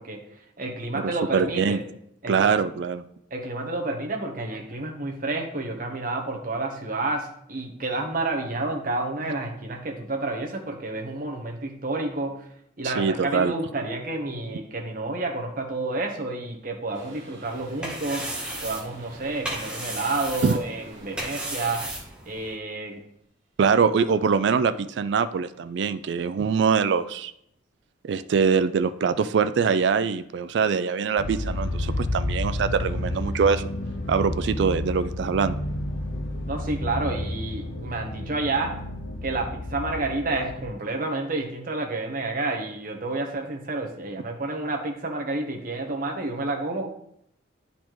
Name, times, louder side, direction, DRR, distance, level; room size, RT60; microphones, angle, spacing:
voice 1, 0.0-1.8 2.2-2.6 3.3-12.5 12.8-21.8 22.2-23.0 36.5-38.7 39.2-46.9, right 2 dB, 45° right, 2 dB, 1.0 m, -30 dB
voice 2, 1.0-1.8 2.3-3.0 12.8-13.5 20.4-20.6 23.6-27.3 28.0-33.6 34.1-35.6, right 6 dB, 60° right, 12 dB, 0.3 m, -23 dB
Toilet flush, 16.9-22.2, right 2 dB, 75° right, 1.8 m, -48 dB
sound 1, 17.4-22.5, right 1 dB, 5° right, 0.9 m, -35 dB
sound 2, 31.2-40.7, left 1 dB, 80° left, 0.9 m, -31 dB
9.9 x 4.2 x 3.0 m, 0.73 s
head